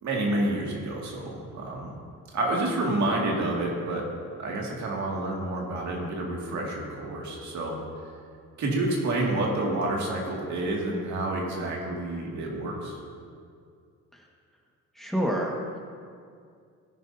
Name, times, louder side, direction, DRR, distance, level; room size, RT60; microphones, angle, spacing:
voice 1, 0.0-1.9 2.3-4.1 4.4-7.8 8.6-12.9, right 2 dB, 70° right, -2 dB, 2.3 m, -29 dB
voice 2, 14.9-15.8, equal, ahead, -2 dB, 1.7 m, -29 dB
16.5 x 9.9 x 2.8 m, 2.2 s
cardioid pair, 90°, 30 cm